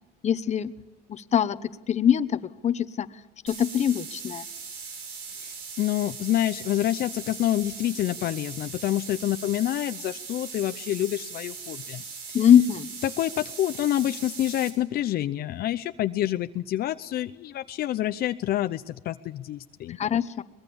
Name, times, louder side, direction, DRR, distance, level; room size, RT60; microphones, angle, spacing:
voice 1, 0.2-0.7 1.1-1.6 1.9-3.1 3.4-4.4 12.3-12.9 20.0-20.4, left 9 dB, 40° left, 13 dB, 1.0 m, -22 dB
sound 1, 3.5-14.7, right 5 dB, 80° right, 5.7 m, -40 dB
voice 2, 5.4-12.0 12.3-12.5 13.0-20.0, left 13 dB, 65° left, 9 dB, 0.7 m, -27 dB
23.5 x 20.0 x 7.1 m, 1.1 s
cardioid pair, 110°, 17 cm